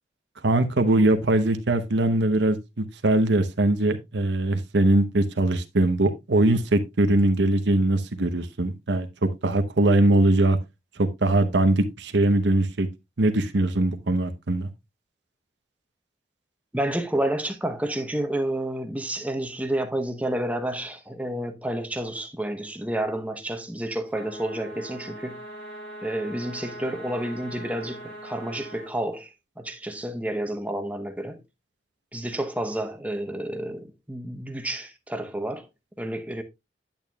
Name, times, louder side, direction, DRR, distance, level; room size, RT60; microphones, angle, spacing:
voice 1, 0.4-9.1 9.4-10.6 11.0-12.9 13.2-14.7, right 2 dB, 85° right, 0.9 m, -21 dB
voice 2, 16.7-25.4 26.0-31.4 32.1-35.7 36.0-36.4, right 1 dB, 10° right, 0.8 m, -30 dB
sound 1, 24.1-28.9, right 1 dB, 45° left, 4.9 m, -41 dB
8.9 x 8.7 x 2.2 m
head